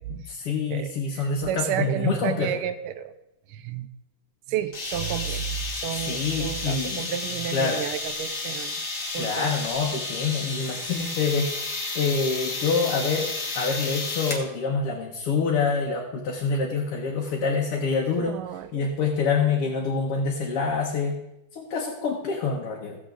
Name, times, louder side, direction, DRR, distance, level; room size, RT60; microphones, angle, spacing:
voice 1, 0.3-2.6 5.9-7.1 7.5-7.8 9.2-11.5 12.0-13.3 13.6-18.4 18.7-21.1 21.5-23.0, left 5 dB, 90° left, -2 dB, 2.2 m, -26 dB
voice 2, 1.4-3.1 3.5-3.9 4.5-8.7 9.1-9.5 18.2-18.6, right 10 dB, 85° right, 11 dB, 1.6 m, -31 dB
sound 1, 4.7-14.5, left 3 dB, 40° left, 1.6 m, -32 dB
16.5 x 7.2 x 3.8 m, 0.90 s
omnidirectional pair, 2.4 m